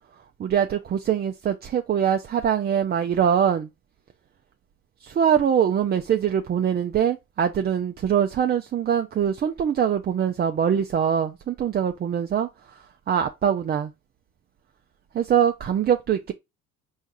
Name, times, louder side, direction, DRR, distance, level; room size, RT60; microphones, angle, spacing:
voice 1, 0.4-3.7 5.0-13.9 15.1-16.3, right 8 dB, 25° right, 0.4 m, -23 dB
4.5 x 2.7 x 4.3 m
hypercardioid pair, 60°, 43 cm